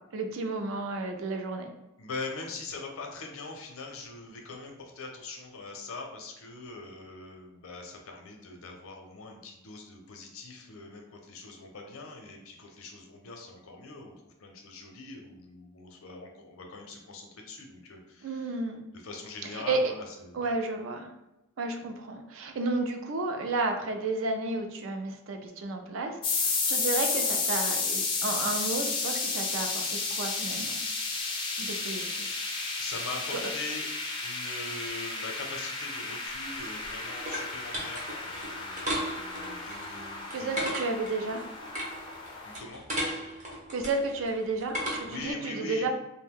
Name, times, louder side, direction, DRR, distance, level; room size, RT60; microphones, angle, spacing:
voice 1, 0.1-1.7 18.2-18.8 19.5-19.8 20.3-21.1 21.6-30.7 31.6-32.3 33.3-33.4 40.3-41.5 43.7-45.9, right 3 dB, 70° right, 4 dB, 0.4 m, -32 dB
voice 2, 2.0-18.6 18.9-20.5 31.3-31.7 32.8-33.9 34.2-40.5 42.4-42.8 45.0-45.9, left 3 dB, 80° left, 2 dB, 0.6 m, -42 dB
sound 1, 26.2-42.6, left 4 dB, 25° left, 0.4 m, -32 dB
sound 2, 36.3-45.3, equal, 35° right, 0.7 m, -37 dB
2.6 x 2.1 x 3.5 m, 0.92 s
head